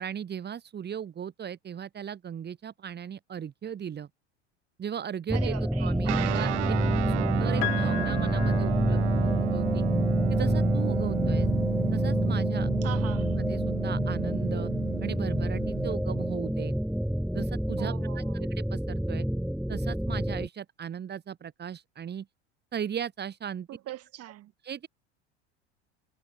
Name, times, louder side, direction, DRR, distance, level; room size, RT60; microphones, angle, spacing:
voice 1, 0.0-4.1 4.8-6.5 7.1-9.9 10.3-11.5 11.9-12.7 13.4-14.7 15.0-16.7 17.3-19.3 19.7-22.3 22.7-23.7 24.6-24.9, right 8 dB, 30° right, 3.6 m, -37 dB
sound 1, 5.3-20.5, equal, ahead, 0.8 m, -27 dB
voice 2, 5.3-6.7 12.8-13.3 17.8-18.5 23.7-24.5, right 14 dB, 45° right, 7.2 m, -42 dB
Guitar, 6.0-16.0, right 16 dB, 80° right, 0.5 m, -33 dB
Piano, 7.6-9.6 10.9-11.0, left 39 dB, 55° left, 0.9 m, -36 dB
hypercardioid pair, 90°, 34 cm